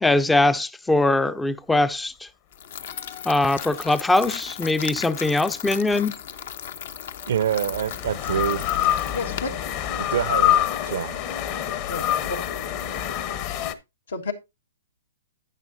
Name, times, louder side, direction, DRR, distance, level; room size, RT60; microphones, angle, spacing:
voice 1, 0.0-2.3 3.3-6.1, left 2 dB, 5° left, 0.4 m, -21 dB
sound 1, 2.5-10.5, left 8 dB, 65° left, 0.8 m, -37 dB
sound 2, 2.8-4.3 6.2-13.7, left 11 dB, 40° left, 1.0 m, -27 dB
voice 2, 7.3-8.7 9.9-11.2, right 9 dB, 70° right, 0.6 m, -26 dB
voice 3, 9.1-9.5 11.9-12.4 14.1-14.3, left 4 dB, 85° left, 1.6 m, -30 dB
11.0 x 9.0 x 2.7 m
hypercardioid pair, 140°, 0 cm